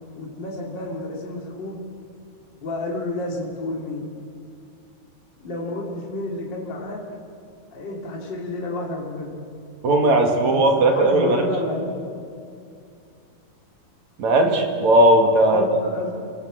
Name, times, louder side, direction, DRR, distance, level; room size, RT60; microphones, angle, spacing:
voice 1, 0.1-1.9 2.6-4.2 5.4-7.1 7.7-9.4 10.5-11.9 15.5-16.1, left 2 dB, 35° left, -1 dB, 3.4 m, -31 dB
voice 2, 9.8-11.4 14.2-15.6, right 1 dB, 55° right, 3 dB, 3.4 m, -17 dB
30.0 x 19.5 x 7.7 m, 2.4 s
omnidirectional pair, 3.9 m